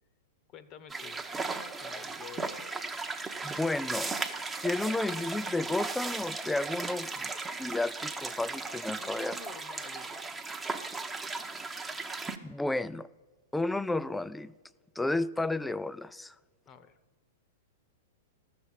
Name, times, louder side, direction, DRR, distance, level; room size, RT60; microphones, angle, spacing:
voice 1, 0.5-1.2 1.8-2.7 9.0-10.4 16.7-17.0, left 8 dB, 35° left, 13 dB, 0.9 m, -49 dB
sound 1, 0.9-12.4, right 3 dB, 10° right, 0.8 m, -36 dB
voice 2, 3.4-4.1 4.6-7.3 7.6-9.4 12.4-13.1 13.5-14.5 15.0-16.3, left 2 dB, 5° left, 18 dB, 0.3 m, -32 dB
13.5 x 6.7 x 7.2 m, 1.3 s
hypercardioid pair, 110°, 0 cm